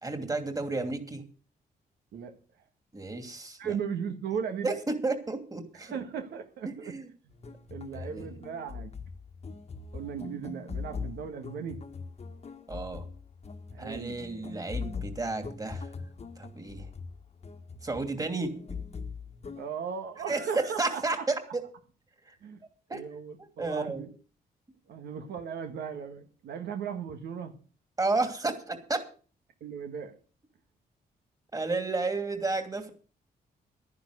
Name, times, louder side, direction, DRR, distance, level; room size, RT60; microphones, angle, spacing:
voice 1, 0.0-1.2 2.9-3.8 4.6-5.9 6.6-7.1 7.9-8.3 12.7-13.0 13.8-15.9 16.4-16.9 17.8-18.5 20.3-21.6 22.2-22.3 22.9-23.0 23.4-24.1 28.0-29.0 31.5-32.9, right 3 dB, 20° right, 2.7 m, -32 dB
voice 2, 3.6-4.8 5.8-6.9 7.7-8.9 9.9-11.8 13.7-14.2 19.6-21.0 22.4-22.6 22.9-24.1 24.9-27.5 29.6-30.2, right 7 dB, 85° right, 1.7 m, -37 dB
sound 1, 7.3-19.7, left 5 dB, 40° left, 1.4 m, -41 dB
11.5 x 10.5 x 6.6 m
cardioid pair, 80°, 17 cm